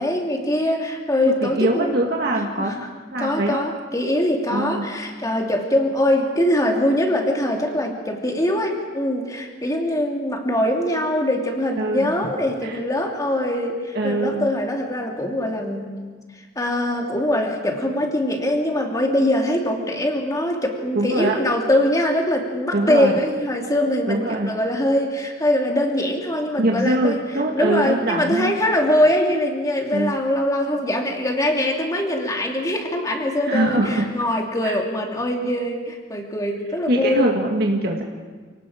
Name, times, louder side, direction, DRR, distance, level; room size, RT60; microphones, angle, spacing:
voice 1, 0.0-1.9 2.6-2.9 3.2-15.9 16.6-27.2 27.5-37.3, left 1 dB, 20° left, 1 dB, 2.8 m, -22 dB
voice 2, 1.3-2.8 3.1-3.6 4.5-4.9 11.8-12.1 12.6-12.8 13.9-14.5 21.0-21.4 22.7-23.2 24.1-24.5 26.6-28.5 29.9-30.1 33.5-34.1 34.6-34.8 36.9-38.0, right 1 dB, 60° right, 0 dB, 1.8 m, -23 dB
29.0 x 18.5 x 5.1 m, 1.5 s
head